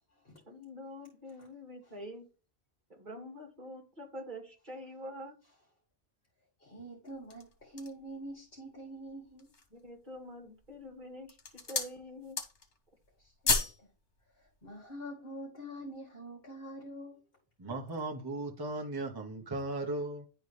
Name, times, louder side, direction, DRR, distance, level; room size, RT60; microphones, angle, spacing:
voice 1, 0.5-2.3 2.9-5.3 9.7-12.4, equal, 45° right, 2.2 m, -46 dB
voice 2, 6.6-9.5 13.4-13.9 14.6-17.1, right 1 dB, 55° left, 2.2 m, -45 dB
sound 1, 7.1-8.1 8.7-8.8 9.2-9.8 10.5-10.9 11.2-12.0 12.2-12.8 13.0-13.8 14.1-14.3, left 4 dB, 80° left, 1.6 m, -33 dB
voice 3, 17.6-20.3, right 2 dB, 20° right, 0.9 m, -37 dB
10.5 x 4.1 x 3.2 m
omnidirectional pair, 1.2 m